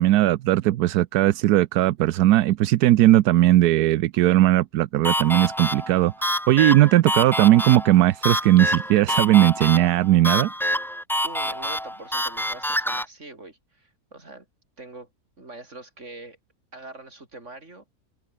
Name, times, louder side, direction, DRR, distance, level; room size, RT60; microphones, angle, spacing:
voice 1, 0.0-10.5, right 14 dB, 80° right, 1.2 m, -18 dB
sound 1, 5.0-13.0, equal, ahead, 1.0 m, -27 dB
voice 2, 11.2-14.5 14.8-15.1 15.4-16.4 16.7-17.8, right 2 dB, 45° right, 5.1 m, -43 dB
omnidirectional pair, 1.7 m